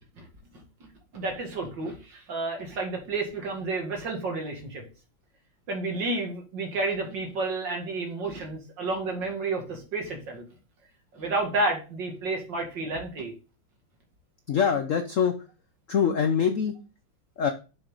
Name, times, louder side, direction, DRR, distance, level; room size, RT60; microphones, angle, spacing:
voice 1, 1.1-4.9 5.7-10.5 11.1-13.3, right 2 dB, 60° right, 2 dB, 2.7 m, -31 dB
voice 2, 14.5-15.4 15.9-16.8 17.4-17.5, left 7 dB, 85° left, 7 dB, 0.7 m, -24 dB
7.0 x 6.4 x 4.0 m, 0.33 s
omnidirectional pair, 2.4 m